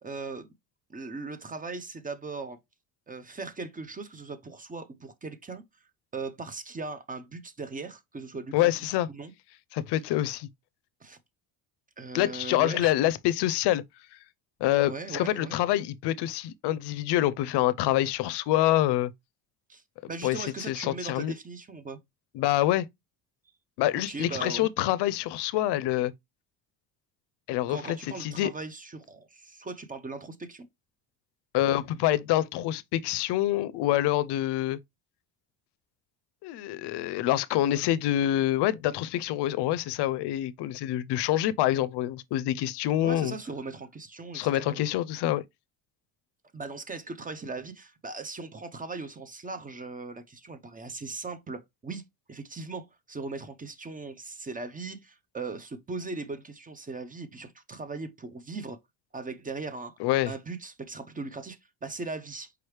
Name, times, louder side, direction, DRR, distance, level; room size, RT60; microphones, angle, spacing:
voice 1, 0.0-0.5 0.9-2.6 3.1-5.6 6.1-9.3 11.0-11.2 12.0-12.9 14.9-15.6 19.7-19.8 20.1-22.0 24.1-24.7 27.7-30.7 43.0-44.8 46.5-52.0 52.3-58.8 59.1-60.0 60.3-62.7, right 3 dB, 20° right, 0.5 m, -39 dB
voice 2, 8.5-9.1 9.7-10.5 12.1-13.8 14.6-19.1 20.2-21.3 22.3-22.9 23.8-26.1 27.5-28.5 31.5-34.8 36.4-43.3 44.3-45.4 60.0-60.3, left 14 dB, 70° left, 0.5 m, -26 dB
4.8 x 3.1 x 3.2 m
cardioid pair, 110°, 42 cm